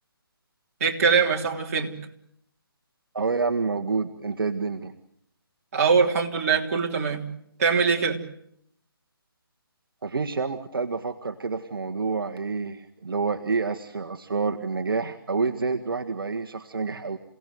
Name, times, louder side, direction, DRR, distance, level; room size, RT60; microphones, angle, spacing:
voice 1, 0.8-1.9 5.7-7.2 7.6-8.2, right 5 dB, 40° right, 1 dB, 3.4 m, -22 dB
voice 2, 3.1-4.9 10.0-17.2, right 4 dB, 65° right, 5 dB, 1.7 m, -28 dB
28.5 x 17.5 x 9.4 m, 0.73 s
figure-of-eight pair, 155°, 13 cm